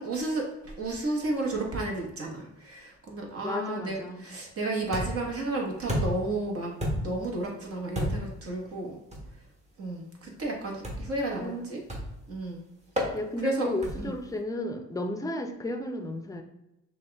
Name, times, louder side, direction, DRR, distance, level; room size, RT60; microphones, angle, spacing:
voice 1, 0.0-9.0 9.8-11.8 12.3-12.6 13.4-13.7 14.0-14.1, right 2 dB, 50° right, -1 dB, 1.3 m, -32 dB
voice 2, 3.4-4.2 11.4-11.7 13.1-16.4, left 1 dB, 10° left, 5 dB, 0.6 m, -33 dB
sound 1, 4.9-5.3 5.9-6.3 6.8-7.2 7.9-8.4 9.1-9.3 10.8-11.2 11.9-12.2 13.0-13.2 13.8-14.2, equal, 25° right, 1.2 m, -31 dB
6.0 x 2.4 x 3.4 m, 0.88 s
cardioid pair, 90°, 30 cm